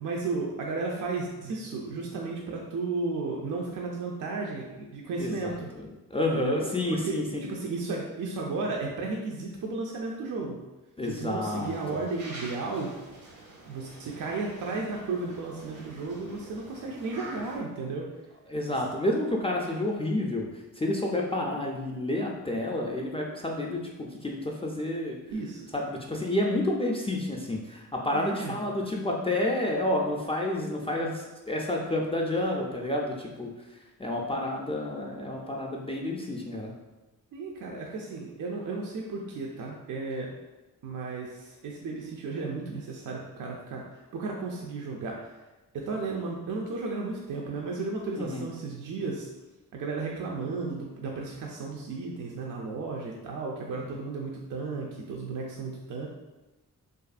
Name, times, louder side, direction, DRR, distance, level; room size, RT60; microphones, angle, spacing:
voice 1, 0.0-5.7 6.3-6.6 6.9-10.6 11.0-12.9 13.7-18.1 18.7-18.8 25.3-25.7 28.1-28.6 37.3-40.3 40.8-45.4 45.7-49.3 49.7-56.1, right 3 dB, 60° right, -1 dB, 0.5 m, -34 dB
voice 2, 5.2-5.8 6.1-7.4 11.0-11.7 18.5-20.5 20.8-25.2 25.7-33.5 34.0-36.7 48.1-48.4 53.7-54.0, left 1 dB, 15° left, -2 dB, 0.4 m, -30 dB
sound 1, 11.4-17.6, right 2 dB, 80° right, 0.9 m, -47 dB
2.6 x 2.5 x 2.4 m, 1.1 s
supercardioid pair, 50°, 36 cm